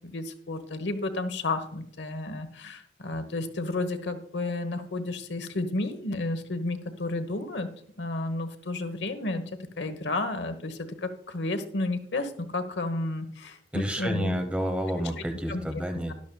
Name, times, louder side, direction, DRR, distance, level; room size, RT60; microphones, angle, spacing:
voice 1, 0.0-7.7 8.0-9.4 9.8-14.4 15.2-15.6 15.9-16.1, left 2 dB, 85° left, 9 dB, 1.1 m, -32 dB
voice 2, 13.7-16.1, equal, 5° right, 5 dB, 0.9 m, -30 dB
12.5 x 11.5 x 2.3 m, 0.64 s
head